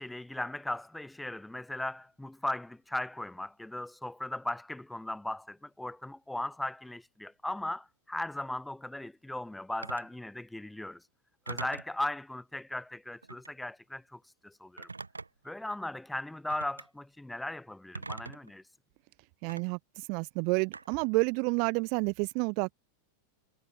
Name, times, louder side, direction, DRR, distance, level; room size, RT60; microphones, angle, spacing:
voice 1, 0.0-11.0 11.5-14.9 15.4-18.6, left 1 dB, 5° left, 0.7 m, -37 dB
Telephone, 9.8-10.1 11.5-12.0 13.2-13.6 14.8-15.5 16.5-16.9 17.9-18.5 19.5-19.6 20.7-21.1, right 3 dB, 80° right, 2.1 m, -42 dB
voice 2, 19.4-22.7, right 36 dB, 45° right, 0.3 m, -30 dB
figure-of-eight pair, 90°, 0 cm